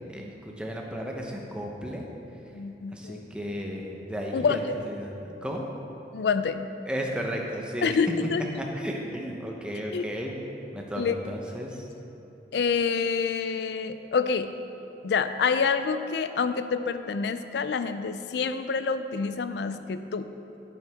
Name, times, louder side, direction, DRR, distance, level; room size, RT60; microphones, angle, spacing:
voice 1, 0.1-2.0 2.9-5.2 5.4-5.6 6.9-8.0 8.6-10.4 10.7-11.9, equal, 5° right, -1 dB, 0.7 m, -34 dB
voice 2, 2.5-3.2 4.3-4.6 6.1-6.6 7.8-8.4 9.9-10.0 11.0-11.2 12.5-14.5 15.0-20.3, left 5 dB, 70° left, 10 dB, 0.4 m, -27 dB
9.2 x 7.9 x 3.5 m, 2.9 s
head